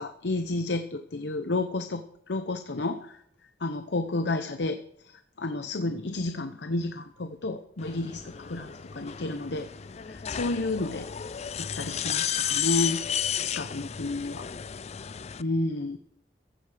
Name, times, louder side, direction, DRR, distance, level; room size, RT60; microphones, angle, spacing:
voice 1, 0.0-3.2 3.6-9.7 10.1-11.1 11.6-13.0 13.4-14.4 15.4-16.0, left 2 dB, 75° left, 9 dB, 0.8 m, -31 dB
sound 1, 7.8-15.4, left 9 dB, 40° left, 0.4 m, -33 dB
15.0 x 12.0 x 5.0 m, 0.73 s
head